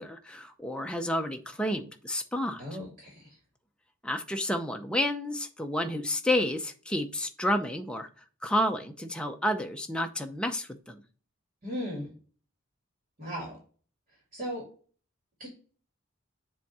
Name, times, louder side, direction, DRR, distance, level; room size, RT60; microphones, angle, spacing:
voice 1, 0.0-2.6 4.0-8.1 8.4-11.0, left 1 dB, 5° left, 0.6 m, -30 dB
voice 2, 2.6-3.4 11.6-12.1 13.2-13.6 14.3-14.6 15.4-15.5, equal, 40° right, 2.7 m, -36 dB
7.5 x 3.5 x 4.3 m
head